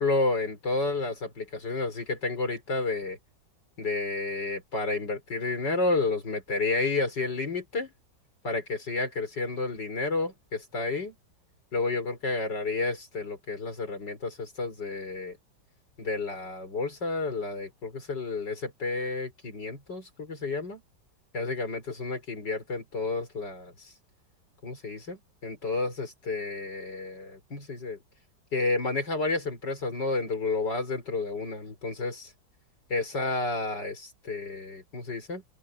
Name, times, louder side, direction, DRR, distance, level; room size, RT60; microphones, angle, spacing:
voice 1, 0.0-3.2 3.8-7.9 8.4-11.2 11.7-15.4 16.0-20.8 21.3-23.9 24.6-28.0 28.5-32.3 32.9-35.4, left 3 dB, 70° left, 5.5 m, -31 dB
open air
omnidirectional pair, 1.9 m